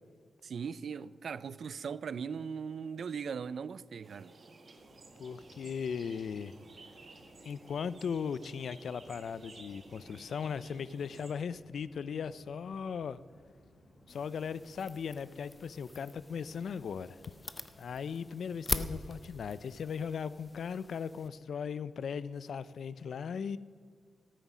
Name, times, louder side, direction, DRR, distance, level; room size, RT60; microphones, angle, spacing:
voice 1, 0.4-4.3, right 6 dB, 60° right, 18 dB, 0.3 m, -39 dB
sound 1, 4.0-11.3, right 3 dB, 40° right, 1.2 m, -55 dB
sound 2, 4.8-19.0, left 1 dB, 45° left, 2.4 m, -62 dB
voice 2, 5.2-6.5 7.4-13.2 14.1-17.2 17.8-23.6, left 6 dB, 70° left, 17 dB, 0.4 m, -38 dB
sound 3, 14.1-21.3, left 2 dB, 20° left, 0.5 m, -42 dB
13.0 x 9.1 x 6.1 m, 2.1 s
wide cardioid pair, 170°, 0 cm